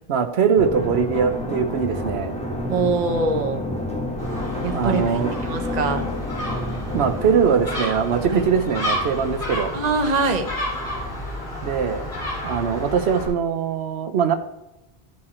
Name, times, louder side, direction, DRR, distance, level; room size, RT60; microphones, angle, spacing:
voice 1, 0.1-2.3 4.7-5.3 6.9-9.7 11.6-12.0 12.4-14.3, right 6 dB, 80° right, 7 dB, 1.0 m, -21 dB
sound 1, 0.6-11.9 12.3-12.4, left 1 dB, 5° left, 1.2 m, -31 dB
voice 2, 2.7-3.6 4.6-6.1 8.3-8.4 9.7-10.5, right 3 dB, 45° right, 5 dB, 0.9 m, -23 dB
Gull seagull, 4.2-13.3, left 1 dB, 80° left, 3.4 m, -31 dB
12.5 x 4.8 x 4.2 m, 0.93 s
omnidirectional pair, 1.1 m